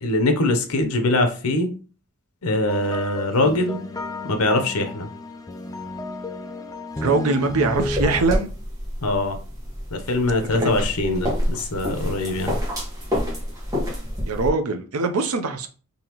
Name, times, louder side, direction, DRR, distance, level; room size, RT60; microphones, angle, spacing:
voice 1, 0.0-1.7 2.4-3.8 4.3-5.1 9.0-9.4 9.9-12.6, left 2 dB, 85° left, 0.8 m, -22 dB
sound 1, 2.7-8.2, left 2 dB, 15° left, 0.4 m, -32 dB
voice 2, 7.0-8.5 10.5-10.7 14.2-15.7, right 3 dB, 85° right, 0.6 m, -22 dB
sound 2, 7.8-14.5, equal, 15° right, 1.2 m, -28 dB
3.9 x 2.9 x 3.0 m
head